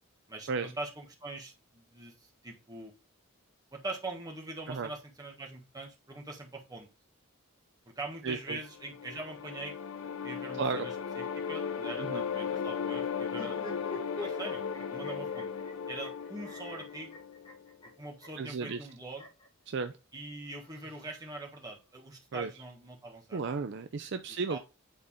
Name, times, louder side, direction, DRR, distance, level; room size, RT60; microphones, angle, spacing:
voice 1, 0.3-2.9 3.7-6.9 7.9-9.7 10.2-13.7 14.2-15.5 15.9-17.1 18.0-19.3 20.1-23.4 24.4-24.6, right 2 dB, 20° right, 0 dB, 1.7 m, -43 dB
voice 2, 8.2-8.6 10.6-10.9 12.0-12.2 18.4-18.8 19.7-19.9 22.3-22.5 23.3-24.6, right 4 dB, 55° right, 8 dB, 0.5 m, -34 dB
sound 1, 8.6-17.7, left 7 dB, 80° left, 0.6 m, -36 dB
sound 2, 13.3-19.5 20.4-21.6, left 2 dB, 25° left, 1.8 m, -47 dB
8.7 x 4.1 x 3.7 m, 0.30 s
head